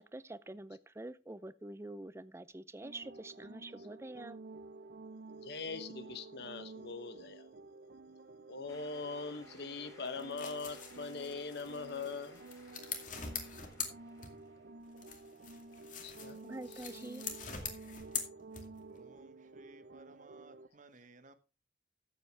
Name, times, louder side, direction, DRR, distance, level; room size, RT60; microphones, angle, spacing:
voice 1, 0.0-4.4 16.4-17.2, right 2 dB, 15° right, 0.5 m, -46 dB
sound 1, 2.8-20.7, right 3 dB, 65° right, 0.6 m, -52 dB
voice 2, 5.4-7.5 8.5-12.4 16.0-16.4 16.7-17.2, left 4 dB, 65° left, 1.0 m, -42 dB
sound 2, 8.7-15.5, left 1 dB, 20° left, 2.7 m, -61 dB
sound 3, 10.0-14.6 15.0-19.0, left 6 dB, 50° left, 2.3 m, -44 dB
voice 3, 18.9-21.3, right 2 dB, 45° right, 1.2 m, -58 dB
13.5 x 8.0 x 3.4 m
head